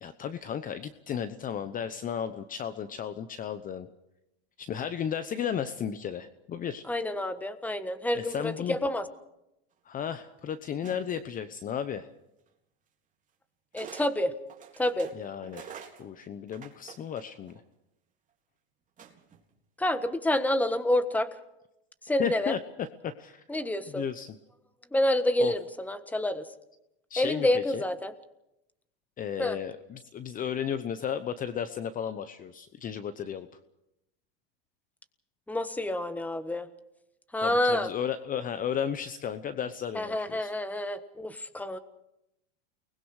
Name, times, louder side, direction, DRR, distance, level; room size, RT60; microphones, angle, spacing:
voice 1, 0.0-3.9 4.6-6.8 8.1-8.8 9.8-12.1 15.1-15.7 16.0-17.6 22.2-23.4 23.9-24.4 25.4-25.5 27.1-27.8 29.2-33.5 37.4-40.5, left 8 dB, 25° left, 12 dB, 0.9 m, -34 dB
voice 2, 6.9-9.0 13.7-14.3 14.8-15.1 19.8-21.3 22.1-22.5 23.5-24.0 24.9-26.5 27.2-28.1 29.4-29.6 35.5-36.7 37.3-37.9 39.9-41.8, left 1 dB, 5° left, 11 dB, 1.4 m, -28 dB
sound 1, 10.8-11.3 12.5-12.6 13.7-14.1 14.5-17.6 19.0-19.4, right 7 dB, 25° right, 3.8 m, -46 dB
29.5 x 20.5 x 4.9 m, 0.86 s
supercardioid pair, 120°, 31 cm